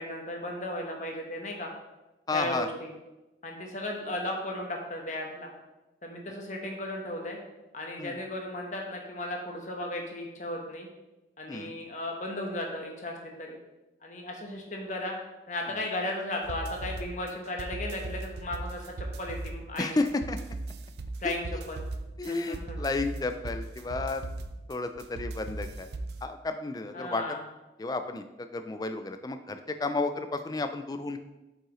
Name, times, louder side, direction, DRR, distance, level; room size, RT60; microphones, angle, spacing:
voice 1, 0.0-1.7 2.3-2.9 3.4-5.5 6.0-7.4 7.7-10.9 11.4-13.6 14.0-15.2 15.5-19.9 21.2-21.9 22.3-22.8 26.9-27.4, left 1 dB, 40° left, 1 dB, 1.1 m, -35 dB
voice 2, 2.3-2.7 8.0-8.2 11.5-11.7 19.8-20.4 21.2-21.6 22.2-24.2 24.7-25.9 26.2-27.4 27.8-31.2, left 3 dB, 20° left, 9 dB, 0.3 m, -32 dB
sound 1, 16.4-26.2, right 2 dB, 65° right, 0.4 m, -38 dB
7.5 x 5.5 x 3.1 m, 1.0 s
head